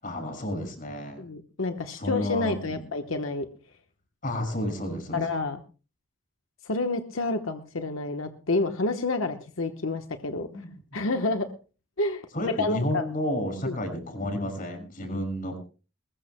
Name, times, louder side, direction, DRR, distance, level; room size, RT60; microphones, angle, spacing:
voice 1, 0.0-1.2 1.9-2.8 4.2-5.3 10.5-10.7 12.3-15.6, left 1 dB, 45° left, 4 dB, 5.8 m, -31 dB
voice 2, 1.2-3.5 5.1-5.6 6.6-10.5 10.9-11.5 12.0-12.2 12.6-13.0 13.6-13.8, left 3 dB, 90° left, 6 dB, 1.1 m, -29 dB
21.5 x 20.5 x 2.2 m, 0.36 s
head